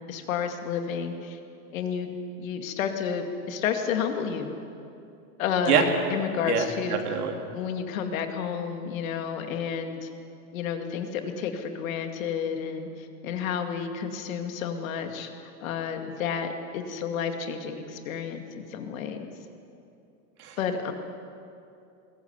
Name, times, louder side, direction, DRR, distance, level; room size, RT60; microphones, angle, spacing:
voice 1, 0.1-1.4 1.7-2.1 2.4-4.5 5.4-5.8 6.1-7.0 7.5-10.1 10.5-15.3 15.6-19.2 20.6-20.9, left 7 dB, 60° left, 5 dB, 2.3 m, -31 dB
voice 2, 6.5-7.4 20.4-20.6, right 7 dB, 80° right, 3 dB, 3.3 m, -25 dB
21.0 x 18.5 x 8.1 m, 2.6 s
supercardioid pair, 175°, 45 cm